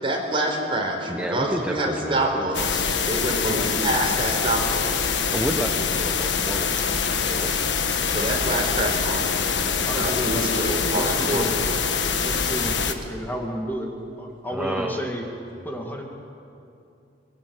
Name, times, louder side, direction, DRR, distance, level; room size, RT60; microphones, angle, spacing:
voice 1, 0.0-4.9 8.1-9.4 9.8-11.5 12.5-12.6, right 1 dB, 30° right, 1 dB, 4.5 m, -26 dB
voice 2, 1.1-2.6 4.8-7.6 14.5-15.0, equal, 10° right, 2 dB, 1.3 m, -31 dB
sound 1, 2.5-12.9, left 6 dB, 75° left, 1.5 m, -24 dB
voice 3, 3.3-4.2 9.8-11.5 12.2-13.9 14.2-15.2 15.6-16.0, equal, 10° left, 1 dB, 2.4 m, -32 dB
25.0 x 21.0 x 8.8 m, 2.6 s
head